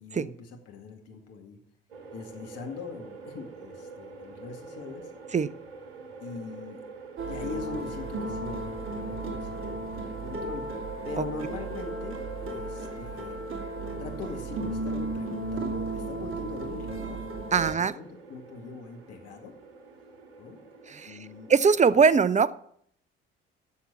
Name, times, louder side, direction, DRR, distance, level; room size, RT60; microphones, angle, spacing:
voice 1, 0.0-1.6 2.1-5.1 6.2-6.8 7.2-10.6 11.0-12.2 12.5-13.4 14.0-17.3 17.5-19.5 20.4-20.6 21.0-21.5, left 4 dB, 55° left, 3 dB, 2.1 m, -41 dB
sound 1, 1.9-21.5, right 4 dB, 80° right, 1.4 m, -47 dB
sound 2, 7.2-17.7, right 2 dB, 45° right, 2.6 m, -35 dB
voice 2, 17.5-18.0 20.9-21.2 21.5-22.6, right 5 dB, 25° right, 17 dB, 0.7 m, -21 dB
11.5 x 7.3 x 7.4 m, 0.65 s
hypercardioid pair, 55°, 29 cm